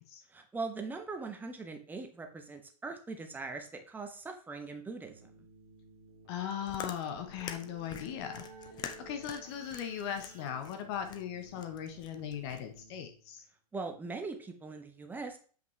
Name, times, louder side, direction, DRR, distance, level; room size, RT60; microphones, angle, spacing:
voice 1, 0.3-5.2 13.7-15.4, right 3 dB, 10° right, 5 dB, 1.0 m, -41 dB
Keyboard (musical), 5.0-13.4, right 3 dB, 70° right, 2.3 m, -55 dB
voice 2, 6.3-8.4 8.8-13.4, left 9 dB, 40° left, 6 dB, 0.9 m, -39 dB
Chewing mastication, 6.3-12.8, left 8 dB, 20° left, 0.6 m, -46 dB
7.8 x 5.3 x 3.2 m, 0.42 s
figure-of-eight pair, 100°, 20 cm